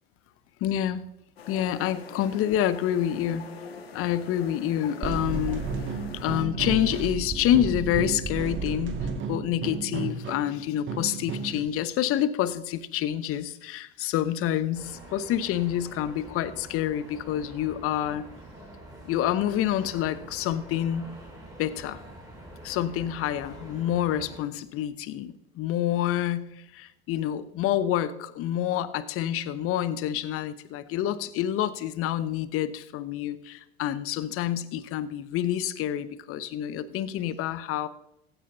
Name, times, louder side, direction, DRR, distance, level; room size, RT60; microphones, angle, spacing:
voice 1, 0.6-1.1 1.5-3.5 3.9-5.7 6.1-18.3 19.0-21.1 21.6-22.0 22.6-26.5 26.7-37.9, left 11 dB, 50° left, 16 dB, 0.9 m, -28 dB
sound 1, 1.4-6.5, left 5 dB, 85° left, 1.5 m, -44 dB
sound 2, 5.0-11.7, right 5 dB, 40° right, 1.7 m, -33 dB
sound 3, 14.7-24.4, right 1 dB, 10° right, 4.9 m, -46 dB
15.5 x 9.2 x 4.0 m, 0.86 s
hypercardioid pair, 75°, 30 cm